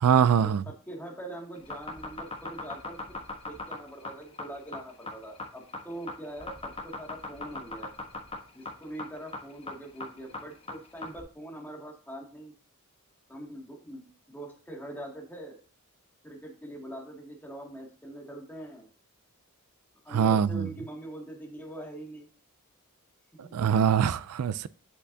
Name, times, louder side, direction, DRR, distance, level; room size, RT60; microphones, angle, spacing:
voice 1, 0.0-0.6 20.1-20.7 23.4-24.7, right 8 dB, 85° right, 0.4 m, -23 dB
voice 2, 0.9-3.2 3.4-7.9 8.5-12.5 13.3-15.6 16.2-18.9 20.0-22.3 23.4-23.6, right 1 dB, 10° left, 2.1 m, -43 dB
sound 1, 1.6-11.2, left 3 dB, 25° left, 1.1 m, -39 dB
8.4 x 5.8 x 2.7 m
head